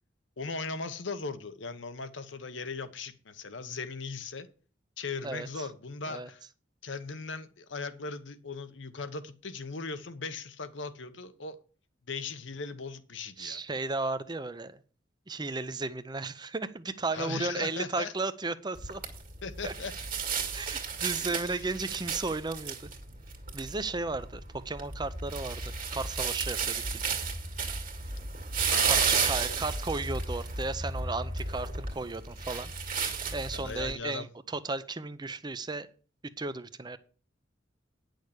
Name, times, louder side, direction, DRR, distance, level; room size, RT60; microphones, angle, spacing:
voice 1, 0.4-4.5 5.0-6.4 6.8-11.6 12.1-13.6 17.1-18.1 19.4-19.9 21.2-21.6 28.7-29.6 33.5-34.3, left 4 dB, 70° left, 1.0 m, -38 dB
voice 2, 5.2-5.7 6.1-6.3 13.4-14.8 15.3-19.0 19.6-19.7 20.5-22.9 23.5-27.2 28.8-32.7 33.3-35.9 36.2-37.0, right 3 dB, 20° right, 0.6 m, -35 dB
sound 1, 18.8-33.9, right 5 dB, 45° right, 2.0 m, -33 dB
9.9 x 6.5 x 6.5 m
head